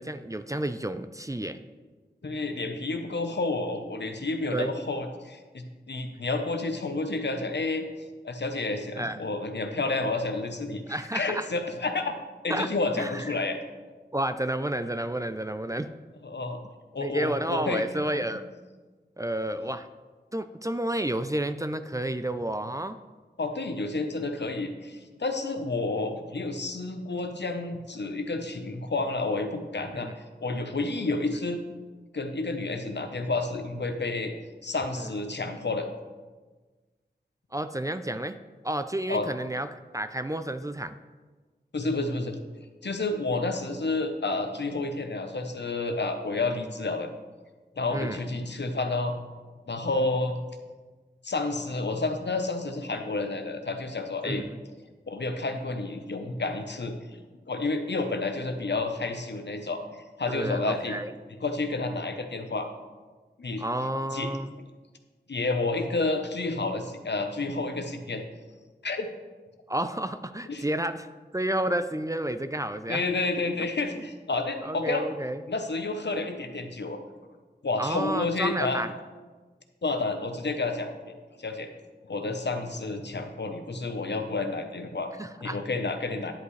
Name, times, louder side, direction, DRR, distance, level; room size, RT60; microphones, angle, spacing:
voice 1, 0.0-1.6 4.5-4.7 9.0-9.2 10.9-11.5 12.5-12.7 13.0-13.3 14.1-15.9 17.0-18.4 19.2-19.9 20.3-23.0 29.9-30.1 34.9-35.1 37.5-38.4 38.6-41.0 47.9-48.2 54.2-54.6 60.3-61.1 63.6-64.5 69.7-71.1 71.3-73.0 74.6-75.4 77.8-78.9 85.2-85.6, right 1 dB, 20° right, 10 dB, 0.4 m, -31 dB
voice 2, 2.2-7.9 8.2-12.2 12.4-13.6 16.2-16.6 16.9-17.8 18.2-18.3 23.4-31.6 32.1-34.3 34.6-35.9 39.1-39.3 41.7-42.4 42.8-47.1 47.8-49.2 49.7-50.4 51.2-54.4 55.1-57.0 57.5-61.0 61.4-62.7 63.4-63.6 64.1-64.4 65.3-68.2 68.8-69.1 70.5-70.7 72.9-75.1 75.5-77.0 77.6-78.8 79.8-81.7 82.1-85.1 85.4-86.3, left 3 dB, 70° left, 6 dB, 0.9 m, -30 dB
10.5 x 8.2 x 3.2 m, 1.3 s
wide cardioid pair, 50°, 18 cm